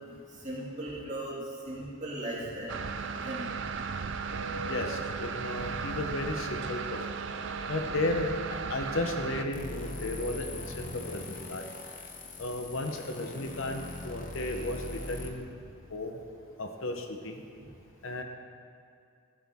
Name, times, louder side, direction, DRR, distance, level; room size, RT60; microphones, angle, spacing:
voice 1, 0.3-1.4 1.6-2.7 3.1-3.5, right 1 dB, 35° right, -7 dB, 2.6 m, -37 dB
sound 1, 2.7-9.4, right 5 dB, 55° right, 0.5 m, -35 dB
voice 2, 4.7-7.1 7.7-8.3 8.7-11.7 12.4-15.5 15.9-16.2 16.6-17.4 18.0-18.2, left 2 dB, 65° left, 4 dB, 0.9 m, -34 dB
sound 2, 9.5-15.3, left 2 dB, 35° left, 1.0 m, -41 dB
15.5 x 10.0 x 3.6 m, 2.4 s
head